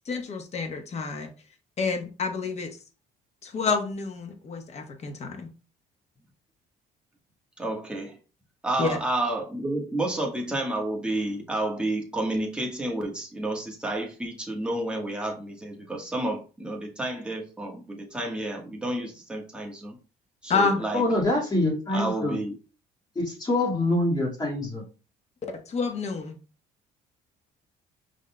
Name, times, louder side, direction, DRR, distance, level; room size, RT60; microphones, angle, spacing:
voice 1, 0.0-1.3 1.8-2.8 3.4-5.5 8.8-9.0 20.5-20.8 25.5-26.4, left 4 dB, 40° left, 1.1 m, -28 dB
voice 2, 7.6-8.2 8.6-20.0 20.4-21.0 21.9-22.6, right 1 dB, 5° right, 1.3 m, -30 dB
voice 3, 20.9-22.4 23.2-24.8, left 1 dB, 25° left, 1.9 m, -25 dB
5.5 x 3.7 x 2.2 m
cardioid pair, 110°, 17 cm